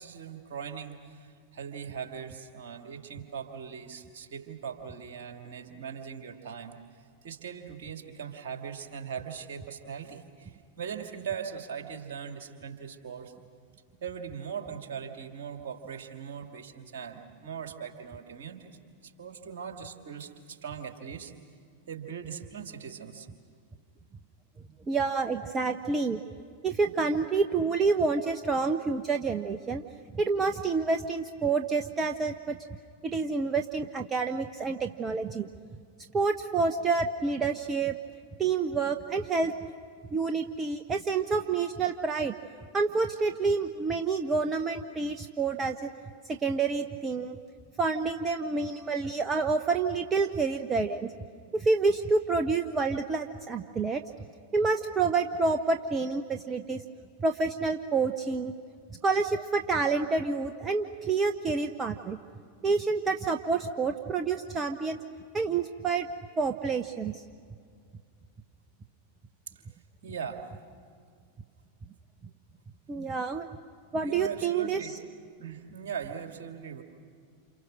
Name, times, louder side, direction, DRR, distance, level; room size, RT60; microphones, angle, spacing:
voice 1, 0.0-6.8 7.2-13.3 14.0-21.3 21.9-23.3 70.0-70.5 74.0-75.0 75.4-76.8, right 7 dB, 55° right, 5 dB, 2.8 m, -40 dB
voice 2, 24.9-26.2 26.6-29.8 30.1-32.6 33.0-35.5 36.1-37.9 38.4-39.5 40.1-42.3 42.7-45.9 46.3-47.4 47.8-51.1 51.5-54.0 54.5-56.8 57.2-58.5 59.0-62.2 62.6-65.0 65.3-66.1 66.4-67.2 72.9-73.5 73.9-75.0, right 4 dB, 20° right, 6 dB, 1.0 m, -28 dB
29.0 x 28.5 x 6.5 m, 2.1 s
figure-of-eight pair, 90°, 0 cm